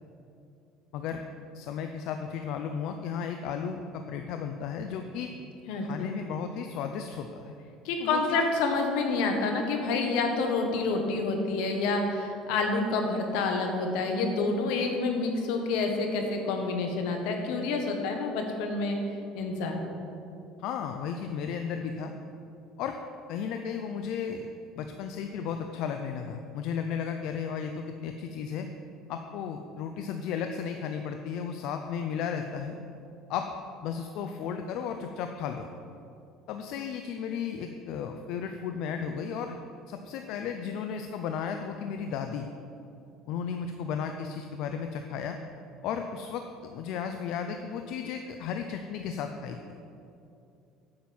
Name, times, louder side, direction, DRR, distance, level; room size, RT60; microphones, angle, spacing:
voice 1, 0.9-1.2 1.5-5.3 5.8-7.6 8.0-8.4 20.6-22.1 22.8-23.0 23.3-24.5 24.7-28.7 29.1-32.7 33.3-33.5 33.8-35.7 36.5-39.6 39.9-42.5 43.3-45.4 45.8-49.6, left 7 dB, 65° left, 6 dB, 0.5 m, -34 dB
voice 2, 5.7-6.1 7.8-19.0 19.3-19.8, left 3 dB, 80° left, 3 dB, 1.5 m, -28 dB
8.6 x 7.4 x 6.0 m, 2.7 s
cardioid pair, 140°, 0 cm